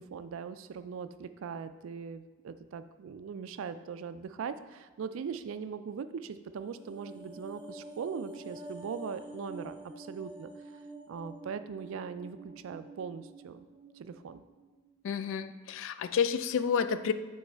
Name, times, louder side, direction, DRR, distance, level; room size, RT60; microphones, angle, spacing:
voice 1, 0.0-10.5 11.1-13.7 13.9-14.4, right 6 dB, 65° right, 11 dB, 0.3 m, -40 dB
Goddess Voice, 6.6-15.0 15.3-15.5, right 2 dB, 25° right, 0.7 m, -48 dB
voice 2, 15.0-17.1, left 6 dB, 60° left, 12 dB, 0.3 m, -30 dB
7.0 x 3.1 x 4.4 m, 1.3 s
head